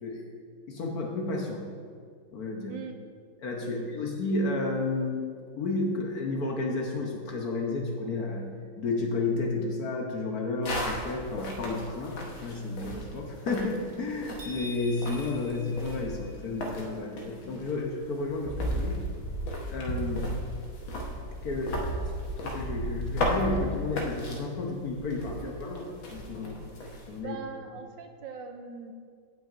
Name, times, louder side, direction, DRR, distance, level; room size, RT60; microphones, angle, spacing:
voice 1, 0.7-1.6 2.3-2.7 3.4-5.3 5.5-8.5 8.8-19.0 19.7-20.3 21.4-22.0 22.4-26.7 27.1-27.4, left 3 dB, 60° left, 1 dB, 1.2 m, -32 dB
sound 1, 10.6-27.2, equal, 75° left, 1.9 m, -35 dB
sound 2, 14.4-16.6, left 2 dB, 60° right, 2.4 m, -45 dB
voice 2, 27.2-28.9, right 5 dB, 75° right, 6 dB, 1.2 m, -41 dB
16.5 x 5.8 x 2.5 m, 2.1 s
omnidirectional pair, 2.2 m